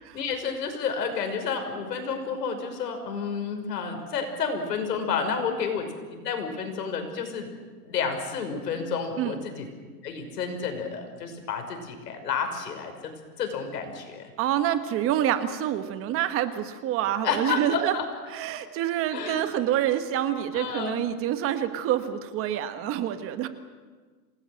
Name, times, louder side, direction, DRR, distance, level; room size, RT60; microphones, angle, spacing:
voice 1, 0.1-7.5 7.8-9.7 10.0-13.1 13.4-14.3 17.2-18.0 19.1-19.4 20.5-21.0, left 5 dB, 85° left, 5 dB, 5.9 m, -30 dB
voice 2, 14.4-18.0 18.3-23.5, right 11 dB, 30° right, 10 dB, 1.3 m, -27 dB
27.5 x 19.0 x 7.9 m, 1.5 s
supercardioid pair, 150°, 47 cm